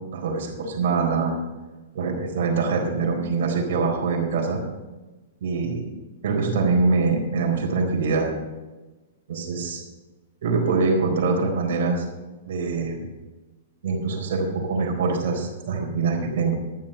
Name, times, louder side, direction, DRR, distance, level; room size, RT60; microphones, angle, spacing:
voice 1, 0.1-1.4 1.9-4.6 5.4-5.8 6.2-8.3 9.3-9.8 10.4-12.0 12.5-13.0 13.8-16.5, right 4 dB, 65° right, 1 dB, 4.2 m, -24 dB
13.0 x 7.6 x 6.6 m, 1.2 s
hypercardioid pair, 150°, 0 cm